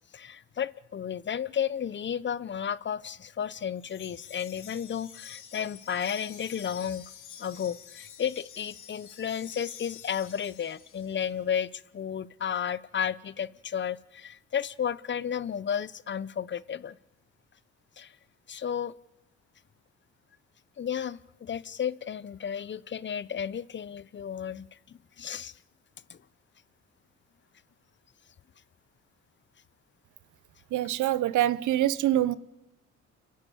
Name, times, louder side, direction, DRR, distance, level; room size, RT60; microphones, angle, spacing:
voice 1, 0.1-7.0 7.4-17.0 18.0-18.1 18.5-18.9 20.8-25.5 26.1-26.2, left 8 dB, 40° left, 0.8 m, -33 dB
Wind chime, 3.8-11.3, left 9 dB, 80° left, 2.7 m, -48 dB
voice 2, 30.7-32.3, right 13 dB, 80° right, 0.9 m, -25 dB
29.5 x 11.5 x 8.6 m
cardioid pair, 90°, 30 cm